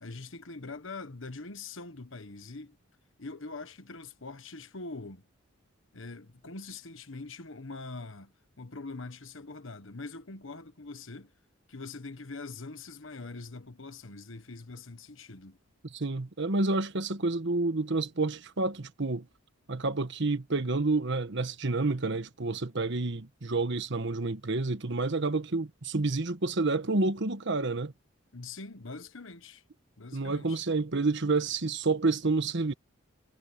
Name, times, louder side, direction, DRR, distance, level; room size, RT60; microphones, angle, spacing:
voice 1, 0.0-2.8 3.2-5.2 5.9-8.3 8.6-11.3 11.7-15.6 28.3-29.6 30.0-30.6, left 3 dB, 70° left, 1.3 m, -43 dB
voice 2, 15.9-19.2 19.7-27.9 30.1-32.7, right 3 dB, 65° right, 1.3 m, -29 dB
head